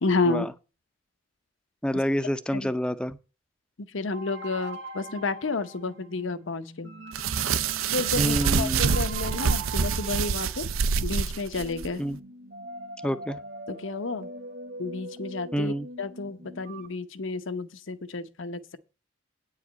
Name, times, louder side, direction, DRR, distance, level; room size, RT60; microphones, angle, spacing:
voice 1, 0.0-0.5 2.5-2.7 3.9-6.9 7.9-10.7 11.0-12.0 13.7-14.3 14.8-18.8, left 3 dB, 65° left, 0.8 m, -31 dB
voice 2, 1.8-3.2 8.2-9.0 12.0-12.2 13.0-13.4 15.5-15.9, equal, 5° left, 0.5 m, -28 dB
sound 1, 4.1-16.9, right 2 dB, 55° right, 1.4 m, -43 dB
sound 2, 7.1-11.9, right 6 dB, 85° right, 0.5 m, -26 dB
9.2 x 4.9 x 7.8 m
head